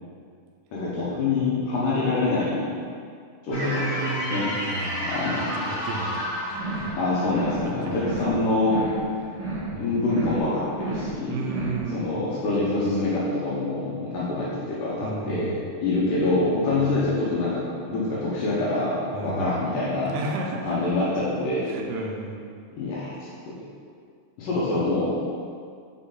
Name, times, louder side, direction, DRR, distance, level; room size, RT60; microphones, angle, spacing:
voice 1, 0.7-2.7 3.4-3.8 4.3-4.5 5.1-5.6 6.9-8.8 9.8-11.5 11.9-15.5 15.8-20.1 20.6-21.7 22.8-23.2 24.4-25.3, left 2 dB, 75° left, -7 dB, 2.1 m, -25 dB
sound 1, 3.5-8.6, equal, 60° left, 2.7 m, -31 dB
voice 2, 3.5-7.0 7.6-8.4 9.2-9.4 9.7-10.0 11.3-12.1 15.0-15.6 16.7-16.9 19.1-19.6 20.1-20.8 21.7-22.5, right 2 dB, 90° right, 1 dB, 2.7 m, -33 dB
sound 2, 6.5-7.0 7.2-7.7 7.9-8.4 8.6-9.1 9.3-9.8 10.0-10.5 10.7-11.2 11.4-11.9, right 3 dB, 65° right, 2.5 m, -32 dB
6.3 x 4.1 x 3.8 m, 2.2 s
omnidirectional pair, 4.6 m